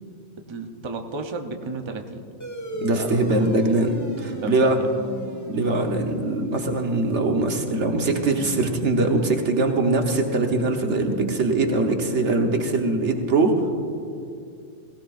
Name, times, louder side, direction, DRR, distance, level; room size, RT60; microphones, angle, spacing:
voice 1, 0.5-2.2 2.7-3.5 4.3-4.9 5.6-5.9, right 4 dB, 30° right, 4 dB, 0.7 m, -33 dB
sound 1, 2.4-7.3, equal, 15° left, 1.2 m, -36 dB
voice 2, 2.8-4.8 5.5-13.5, right 2 dB, 75° right, 3 dB, 1.5 m, -22 dB
18.0 x 17.0 x 2.6 m, 2.4 s
omnidirectional pair, 1.2 m